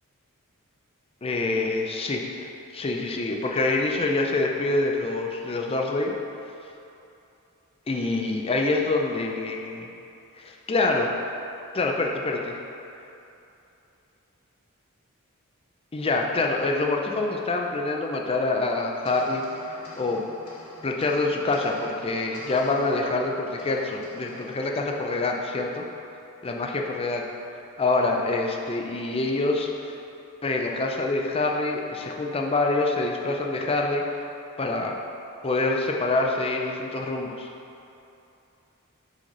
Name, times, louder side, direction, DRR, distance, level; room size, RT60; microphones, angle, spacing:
voice 1, 1.2-6.1 7.9-9.9 10.4-11.1 11.7-12.6 15.9-19.4 19.7-20.2 20.8-25.9 26.4-27.2 27.8-29.9 30.4-34.0 34.6-34.9 35.4-37.5, left 2 dB, 25° left, 1 dB, 0.5 m, -26 dB
sound 1, 19.0-25.7, left 1 dB, 80° left, 1.2 m, -46 dB
6.0 x 4.2 x 3.9 m, 2.8 s
head